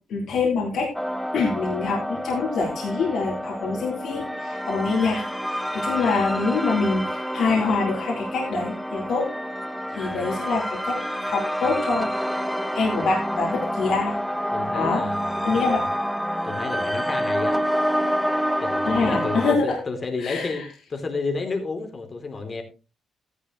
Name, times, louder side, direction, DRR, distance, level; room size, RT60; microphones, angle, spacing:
voice 1, 0.1-0.9 1.3-5.3 5.7-9.3 10.0-12.1 12.7-14.2 14.7-15.0 15.4-15.8 18.9-19.8 20.2-20.6, left 4 dB, 70° left, -2 dB, 3.9 m, -25 dB
sound 1, 0.9-19.5, equal, ahead, 1.0 m, -28 dB
voice 2, 14.5-15.8 16.4-17.6 18.6-22.6, left 3 dB, 35° left, 4 dB, 3.2 m, -31 dB
13.5 x 11.0 x 3.1 m, 0.32 s
cardioid pair, 90°, 0 cm